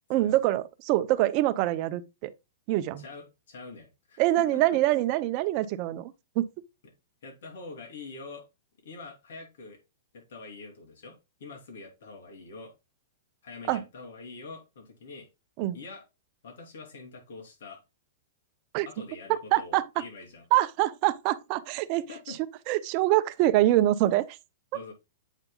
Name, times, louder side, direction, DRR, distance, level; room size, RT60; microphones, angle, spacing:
voice 1, 0.1-2.3 2.7-3.0 4.2-6.5 13.7-13.8 15.6-15.8 18.7-18.9 19.5-19.8 20.5-22.1 22.7-24.4, right 15 dB, 35° right, 0.6 m, -25 dB
voice 2, 3.0-4.2 4.5-4.6 7.2-8.5 8.8-9.8 10.1-12.7 13.4-15.3 15.7-16.0 16.4-17.8 18.8-20.4 22.1-22.4 24.7-24.9, left 3 dB, 75° left, 3.0 m, -45 dB
8.2 x 5.3 x 2.3 m
hypercardioid pair, 155°, 0 cm